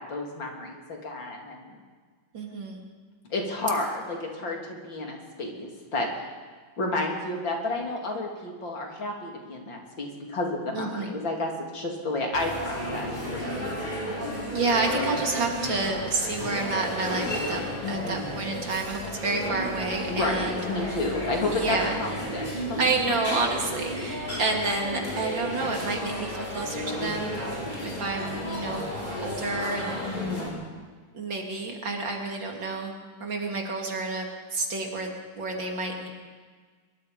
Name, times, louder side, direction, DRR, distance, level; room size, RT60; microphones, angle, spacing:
voice 1, 0.0-1.8 3.3-6.1 6.8-13.7 17.8-18.4 20.1-22.8 23.3-23.4 30.0-30.6, left 2 dB, 70° left, 0 dB, 4.0 m, -31 dB
voice 2, 2.3-2.8 10.7-11.1 14.5-17.6 17.9-21.0 21.5-22.0 22.8-27.5 27.8-28.9 29.2-30.3 31.1-32.9 33.2-36.1, right 3 dB, 70° right, 1 dB, 3.5 m, -29 dB
sound 1, 12.3-30.5, equal, 20° left, 6.5 m, -33 dB
23.5 x 22.0 x 5.4 m, 1.5 s
omnidirectional pair, 2.1 m